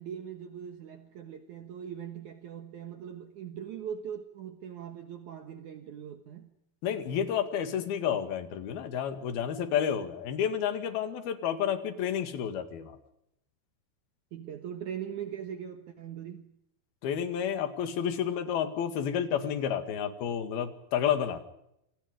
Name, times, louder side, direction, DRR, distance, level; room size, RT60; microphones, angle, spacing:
voice 1, 0.0-6.5 14.3-16.5, right 8 dB, 60° right, 2.4 m, -41 dB
voice 2, 6.8-13.0 17.0-21.4, left 8 dB, 75° left, 4.0 m, -30 dB
28.0 x 27.0 x 5.2 m
omnidirectional pair, 4.5 m